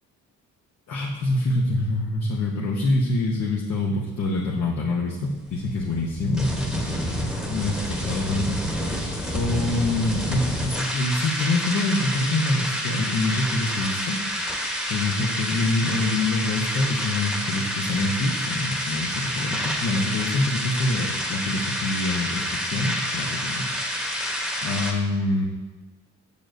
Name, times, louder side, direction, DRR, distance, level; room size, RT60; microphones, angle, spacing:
voice 1, 0.9-9.0 9.3-14.2 14.9-23.7 24.0-24.2 24.6-25.5, left 2 dB, 60° left, -2 dB, 0.9 m, -26 dB
sound 1, 5.2-24.9, equal, ahead, 1.1 m, -29 dB
6.9 x 6.3 x 2.6 m, 1.2 s
cardioid pair, 90°, 30 cm